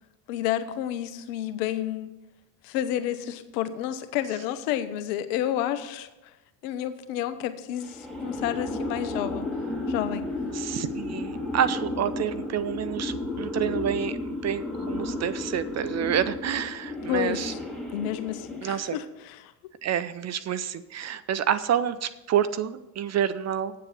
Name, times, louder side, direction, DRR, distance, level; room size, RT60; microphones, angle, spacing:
voice 1, 0.3-2.1 2.6-6.1 6.6-9.5 9.9-10.3 17.1-17.6 17.9-19.5, left 11 dB, 65° left, 12 dB, 1.0 m, -30 dB
sound 1, 7.8-18.9, left 2 dB, ahead, 2.7 m, -33 dB
voice 2, 10.5-17.5 18.6-19.0 19.8-23.7, right 9 dB, 35° right, 13 dB, 0.5 m, -28 dB
8.5 x 7.5 x 6.8 m, 1.0 s
hypercardioid pair, 60°, 50 cm